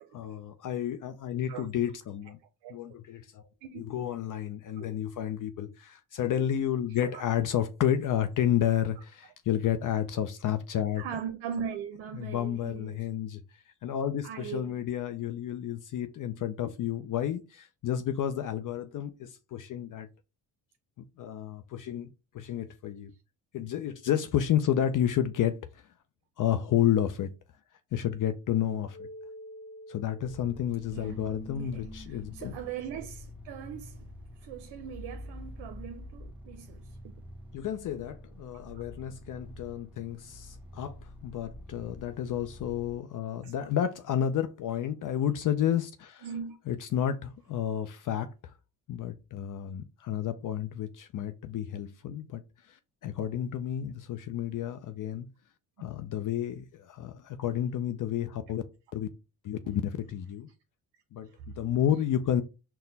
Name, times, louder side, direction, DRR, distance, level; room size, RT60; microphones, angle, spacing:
voice 1, 0.1-2.4 2.7-3.5 3.7-11.0 12.1-13.4 13.8-20.1 21.2-22.1 22.3-23.1 23.5-25.8 26.4-27.3 27.9-29.1 29.9-32.5 37.5-41.0 41.2-46.3 46.7-48.3 48.9-52.4 52.7-55.3 55.8-58.6 58.9-59.1 59.4-60.5 61.1-62.4, left 10 dB, 50° left, 0.5 m, -31 dB
voice 2, 11.0-13.1 14.2-14.8 30.9-31.2 31.6-34.1 34.4-36.9 38.7-38.8 43.4-43.5 46.2-46.6, right 8 dB, 75° right, 0.6 m, -40 dB
sound 1, 28.9-36.8, left 1 dB, 25° left, 1.2 m, -47 dB
sound 2, 30.2-43.0, equal, 5° right, 0.5 m, -48 dB
4.1 x 2.2 x 3.9 m
cardioid pair, 80°, 42 cm